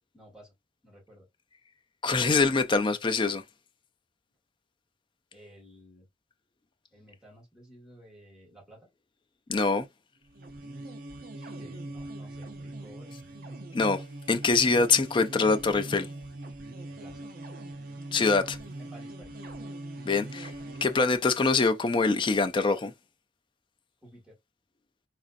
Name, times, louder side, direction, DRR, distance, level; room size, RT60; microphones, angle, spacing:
voice 1, 0.1-0.5 0.8-1.3 5.3-6.1 6.9-8.9 11.4-13.1 16.8-17.3 18.8-19.4 24.0-24.4, right 1 dB, 5° right, 1.9 m, -53 dB
voice 2, 2.0-3.4 9.5-9.9 13.7-14.0 14.3-16.1 18.1-18.6 20.1-20.5 20.8-22.9, left 4 dB, 25° left, 0.4 m, -24 dB
sound 1, 10.3-21.3, right 2 dB, 50° right, 0.7 m, -42 dB
4.1 x 2.5 x 2.5 m
head